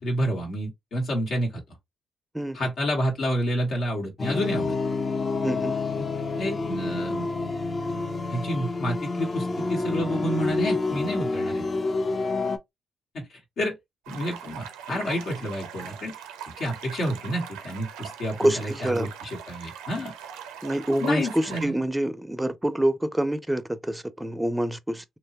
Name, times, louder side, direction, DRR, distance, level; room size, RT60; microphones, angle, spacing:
voice 1, 0.0-1.6 2.5-4.8 6.0-6.1 6.4-7.3 7.9-8.0 8.3-11.6 13.1-13.7 14.1-16.1 16.6-20.1 21.0-21.8, equal, 70° left, 1.0 m, -29 dB
voice 2, 2.3-2.7 5.4-5.7 14.9-15.0 18.4-19.1 20.6-25.0, right 1 dB, 10° right, 0.5 m, -26 dB
sound 1, 4.2-12.6, left 3 dB, 45° left, 0.6 m, -28 dB
sound 2, 14.0-21.7, right 8 dB, 85° right, 0.5 m, -41 dB
2.9 x 2.2 x 2.8 m
hypercardioid pair, 45°, 0 cm